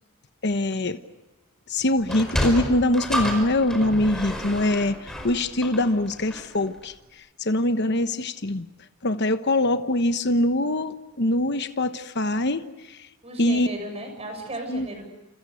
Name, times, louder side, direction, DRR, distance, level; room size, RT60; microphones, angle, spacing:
voice 1, 0.4-1.0 1.7-6.9 7.4-8.7 9.0-13.0 13.4-13.7 14.7-14.9, left 1 dB, 55° left, 9 dB, 1.1 m, -23 dB
Sliding door, 2.0-6.6, equal, 5° left, 5.0 m, -30 dB
voice 2, 13.2-15.1, right 1 dB, 30° right, 5 dB, 7.2 m, -35 dB
28.5 x 28.0 x 6.4 m, 1.0 s
head